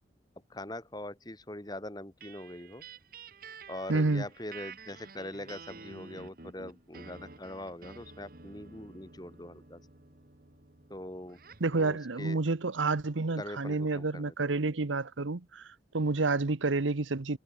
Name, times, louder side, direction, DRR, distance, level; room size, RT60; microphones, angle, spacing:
voice 1, 0.5-2.8 3.7-9.8 10.9-11.4 11.7-12.4 13.4-14.3, left 1 dB, 20° left, 1.8 m, -42 dB
sound 1, 2.2-11.7, right 4 dB, 50° right, 1.6 m, -50 dB
voice 2, 3.9-4.3 11.6-17.4, right 3 dB, 90° right, 1.0 m, -29 dB
head